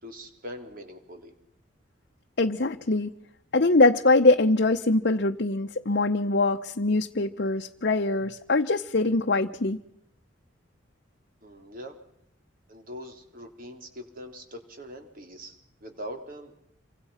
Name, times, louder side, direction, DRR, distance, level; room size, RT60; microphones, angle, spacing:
voice 1, 0.0-1.3 11.4-12.0 12.7-15.6 15.8-16.5, equal, 50° right, 5 dB, 3.8 m, -42 dB
voice 2, 2.4-3.1 3.5-9.8, left 2 dB, 60° left, 3 dB, 0.9 m, -23 dB
27.5 x 24.5 x 5.8 m, 0.75 s
head